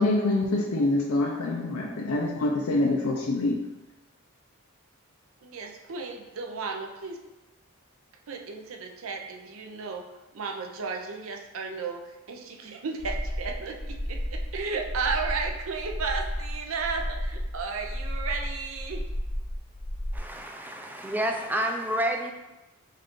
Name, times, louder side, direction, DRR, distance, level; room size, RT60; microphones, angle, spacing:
voice 1, 0.0-3.6, left 2 dB, 85° left, 0 dB, 0.5 m, -25 dB
voice 2, 5.4-7.2 8.3-10.0 10.3-12.0 12.3-19.0, right 4 dB, 65° right, 2 dB, 0.6 m, -34 dB
sound 1, 13.0-20.2, equal, 40° left, 0.6 m, -33 dB
voice 3, 20.1-22.3, right 1 dB, 10° right, 3 dB, 0.4 m, -29 dB
5.4 x 2.5 x 3.7 m, 1.0 s
head